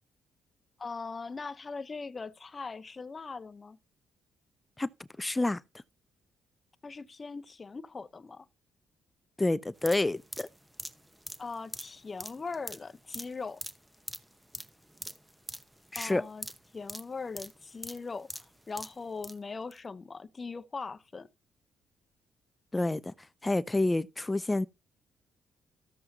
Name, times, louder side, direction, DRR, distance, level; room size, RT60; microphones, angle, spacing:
voice 1, 0.8-3.8 6.8-8.4 11.4-13.6 16.0-16.5 16.7-21.3, left 4 dB, 30° left, 0.8 m, -40 dB
voice 2, 5.2-5.6 9.4-10.5 15.9-16.2 22.7-23.1 23.4-24.7, left 2 dB, 15° left, 0.4 m, -28 dB
sound 1, 9.8-19.4 19.7-19.8, equal, 5° right, 0.9 m, -44 dB
13.5 x 7.8 x 2.8 m
cardioid pair, 90°, 0 cm